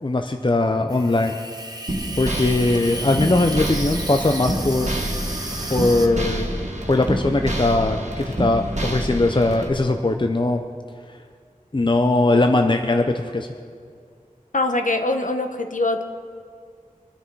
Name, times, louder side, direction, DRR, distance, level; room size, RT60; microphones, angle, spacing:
voice 1, 0.0-1.4 2.2-4.9 5.7-6.5 6.9-10.6 11.7-13.5, left 2 dB, 35° left, 5 dB, 0.7 m, -20 dB
Water tap faucet / Sink (filling or washing), 0.9-6.1, right 1 dB, 25° right, 1.3 m, -33 dB
sound 1, 1.9-9.7, right 1 dB, 55° right, 1.9 m, -27 dB
voice 2, 14.5-16.0, left 2 dB, 60° left, 5 dB, 1.2 m, -23 dB
23.5 x 10.5 x 4.6 m, 2.2 s
wide cardioid pair, 50°, 15 cm